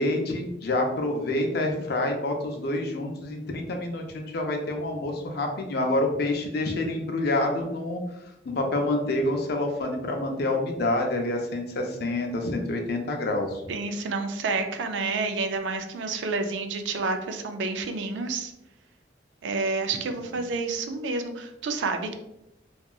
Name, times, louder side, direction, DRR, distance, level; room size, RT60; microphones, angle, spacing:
voice 1, 0.0-8.0 8.4-13.6, left 2 dB, 60° left, 3 dB, 0.5 m, -27 dB
voice 2, 13.7-18.5 19.4-22.1, right 3 dB, 85° right, 6 dB, 0.4 m, -29 dB
2.8 x 2.3 x 2.3 m, 0.86 s
head